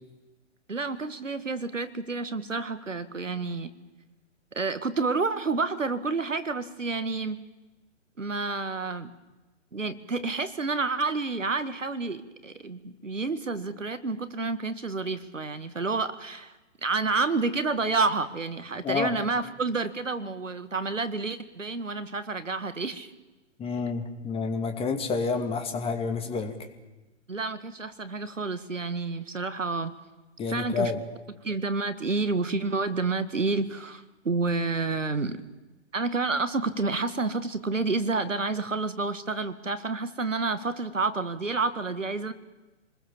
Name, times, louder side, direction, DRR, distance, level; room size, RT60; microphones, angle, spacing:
voice 1, 0.7-3.7 4.5-7.4 8.2-9.1 9.7-23.1 27.3-29.9 30.5-30.9 31.4-35.4 35.9-42.3, right 3 dB, 90° right, 12 dB, 2.0 m, -29 dB
voice 2, 23.6-26.5 30.4-31.0, left 5 dB, 15° left, 6 dB, 2.4 m, -29 dB
27.5 x 21.0 x 7.3 m, 1.1 s
figure-of-eight pair, 125°, 37 cm